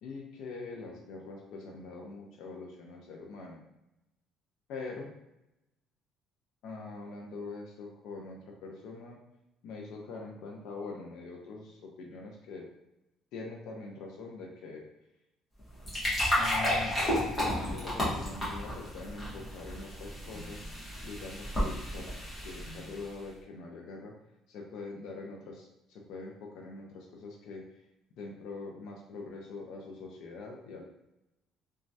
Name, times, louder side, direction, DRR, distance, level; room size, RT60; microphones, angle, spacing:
voice 1, 0.0-3.6 4.7-5.1 6.6-9.2 9.6-12.7 13.3-14.8 16.4-20.7 21.0-24.1 24.5-27.7 28.2-30.8, left 3 dB, 70° left, 0 dB, 0.5 m, -43 dB
sound 1, 15.6-23.1, equal, 15° left, 1.2 m, -32 dB
3.0 x 2.3 x 2.6 m, 0.89 s
cardioid pair, 140°, 0 cm